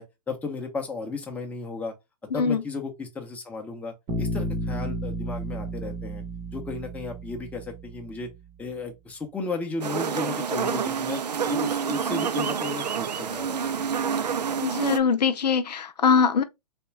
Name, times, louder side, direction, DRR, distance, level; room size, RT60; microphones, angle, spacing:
voice 1, 0.0-1.9 2.3-6.2 6.5-8.3 8.6-11.2 11.5-13.8, left 4 dB, 5° left, 0.7 m, -34 dB
Bass guitar, 4.1-8.1, right 1 dB, 25° right, 1.0 m, -32 dB
sound 1, 9.8-15.0, right 6 dB, 90° right, 0.4 m, -28 dB
voice 2, 14.6-16.4, left 6 dB, 80° left, 0.5 m, -22 dB
3.5 x 2.3 x 3.1 m
hypercardioid pair, 130°, 21 cm